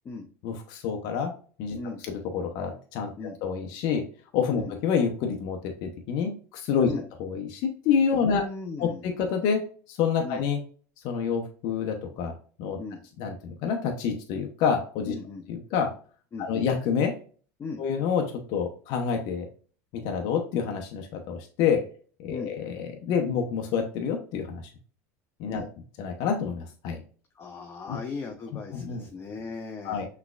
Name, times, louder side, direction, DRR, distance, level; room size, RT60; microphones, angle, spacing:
voice 1, 0.4-1.3 1.6-1.8 2.1-3.1 3.4-4.0 4.3-6.9 7.2-8.4 8.8-10.6 11.0-12.8 13.2-15.1 15.5-16.0 16.4-17.2 17.8-19.5 19.9-21.9 22.2-24.6 25.4-25.7 26.0-27.0 27.9-28.0 28.7-29.1 29.8-30.1, left 6 dB, 60° left, 3 dB, 0.8 m, -28 dB
voice 2, 8.2-9.1 10.2-10.4 12.8-13.0 15.1-15.4 16.3-16.7 17.6-17.8 22.3-22.5 25.5-25.7 27.3-30.0, left 4 dB, 30° left, 3 dB, 0.7 m, -37 dB
5.8 x 3.3 x 2.4 m, 0.41 s
supercardioid pair, 95°, 8 cm